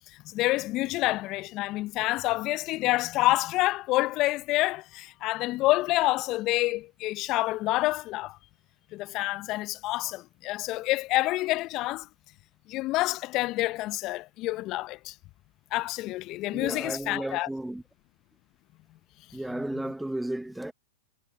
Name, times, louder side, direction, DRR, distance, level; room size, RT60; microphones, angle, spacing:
voice 1, 0.2-8.4 8.9-12.1 12.7-15.1 15.7-17.5, left 18 dB, 40° left, 1.0 m, -28 dB
voice 2, 16.5-17.8 19.3-20.7, right 1 dB, 5° right, 1.4 m, -33 dB
hypercardioid pair, 100°, 0 cm